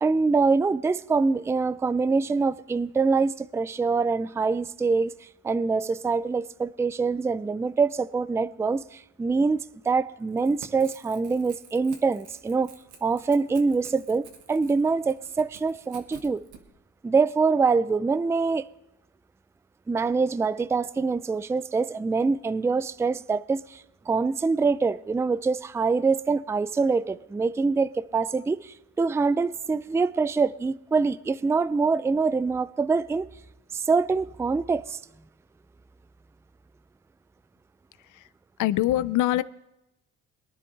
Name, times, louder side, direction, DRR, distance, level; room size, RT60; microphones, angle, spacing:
voice 1, 0.0-5.1 5.4-12.7 13.0-16.4 17.0-18.6 19.9-33.3 33.7-35.0, right 4 dB, 10° right, 0.3 m, -25 dB
Crackle / Tearing, 10.2-16.6, right 6 dB, 75° right, 1.6 m, -50 dB
voice 2, 38.6-39.4, left 14 dB, 80° left, 0.6 m, -24 dB
22.0 x 10.5 x 3.2 m
cardioid pair, 90°, 30 cm